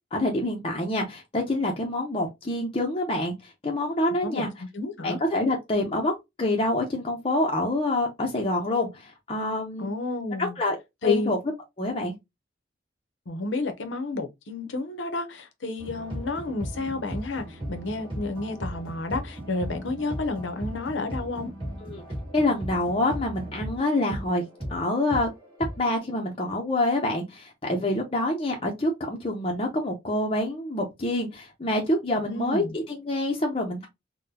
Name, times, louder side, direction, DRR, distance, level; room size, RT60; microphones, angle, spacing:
voice 1, 0.1-3.3 3.6-4.5 5.0-6.1 6.4-9.9 10.4-10.8 11.0-11.4 11.8-12.1 21.8-22.0 22.3-24.4 24.7-25.3 25.8-33.9, left 1 dB, 30° left, 0.6 m, -26 dB
voice 2, 4.2-5.2 9.8-10.6 11.0-11.3 13.3-21.5 32.2-32.7, left 3 dB, 80° left, 0.7 m, -30 dB
sound 1, 15.8-25.9, equal, 25° right, 1.7 m, -37 dB
3.8 x 2.2 x 2.7 m
head